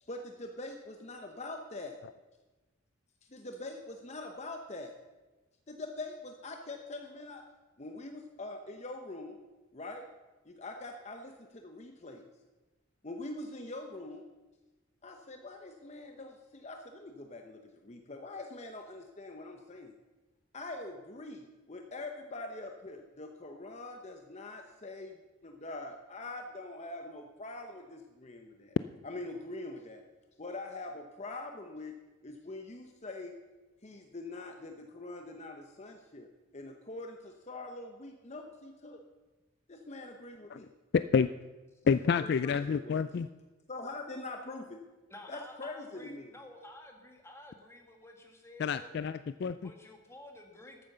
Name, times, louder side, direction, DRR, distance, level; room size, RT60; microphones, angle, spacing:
voice 1, 0.0-2.0 3.2-4.9 5.7-7.4 7.8-9.4 9.7-10.1 10.4-12.2 13.0-14.2 15.0-19.9 20.5-28.8 29.0-30.0 30.4-31.9 32.2-33.3 33.8-36.3 36.5-39.0 39.7-40.7 42.2-43.0 43.7-44.8 45.3-46.3, left 2 dB, 30° left, 4 dB, 0.8 m, -43 dB
voice 2, 40.9-41.3 41.9-43.3 48.6-49.7, left 6 dB, 50° left, 13 dB, 0.3 m, -28 dB
voice 3, 45.1-49.0 49.6-50.8, left 1 dB, 15° left, 2 dB, 1.8 m, -51 dB
13.0 x 8.7 x 6.6 m, 1.2 s
head